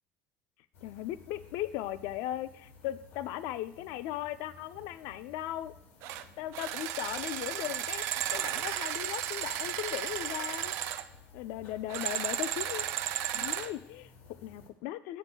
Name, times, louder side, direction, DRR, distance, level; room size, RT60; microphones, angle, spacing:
sound 1, 0.7-14.7, left 4 dB, 60° left, 1.1 m, -56 dB
voice 1, 0.8-5.7 6.4-10.7 11.3-13.0 13.3-15.2, left 13 dB, 75° left, 14 dB, 0.3 m, -38 dB
sound 2, 6.0-6.2 6.5-11.0 11.9-13.7, right 11 dB, 60° right, 0.3 m, -34 dB
7.8 x 7.4 x 2.2 m, 0.73 s
cardioid pair, 155°, 5 cm